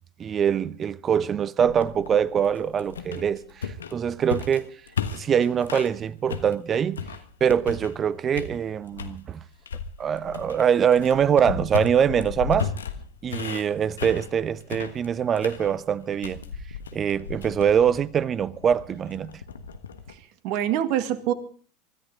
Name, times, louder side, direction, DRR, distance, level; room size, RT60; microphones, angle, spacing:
voice 1, 0.2-4.7 5.1-7.1 7.4-9.4 10.0-12.7 13.2-16.4 16.9-19.3, right 8 dB, 30° right, 0.9 m, -23 dB
sound 1, 1.6-6.0 6.3-8.1 8.3-9.2 9.7-20.1, left 6 dB, 80° left, 1.3 m, -35 dB
voice 2, 20.1-21.3, right 11 dB, 55° right, 1.8 m, -26 dB
24.5 x 13.5 x 3.9 m
figure-of-eight pair, 80°, 0 cm